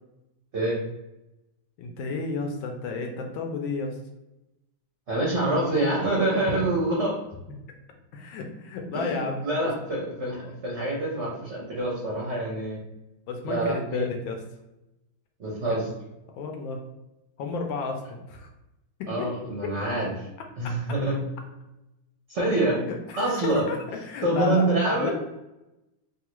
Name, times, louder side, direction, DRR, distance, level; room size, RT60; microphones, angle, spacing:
voice 1, 0.5-0.8 5.1-7.2 8.9-12.8 13.5-14.1 15.4-15.8 19.1-20.3 20.6-21.2 22.3-22.8 23.2-23.7 24.2-25.1, right 2 dB, 60° right, -4 dB, 0.7 m, -26 dB
voice 2, 1.8-4.0 8.1-9.7 13.3-14.4 15.7-15.8 16.3-16.8 17.4-18.0 18.3-18.5 19.0-19.3 22.5-24.7 25.0-25.1, left 4 dB, 75° left, 3 dB, 1.3 m, -32 dB
3.5 x 2.3 x 3.0 m, 0.93 s
omnidirectional pair, 2.2 m